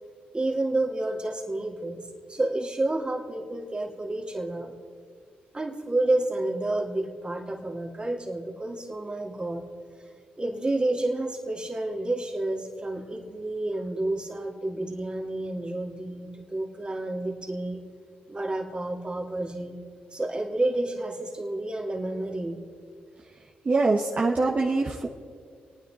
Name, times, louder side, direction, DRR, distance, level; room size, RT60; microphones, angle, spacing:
voice 1, 0.3-4.7 5.5-9.7 10.4-17.8 18.3-19.8 20.1-22.6, right 2 dB, 25° right, 1 dB, 2.5 m, -30 dB
voice 2, 23.6-25.1, right 3 dB, 40° right, -2 dB, 1.3 m, -23 dB
27.5 x 9.3 x 4.3 m, 2.1 s
supercardioid pair, 55°, 4 cm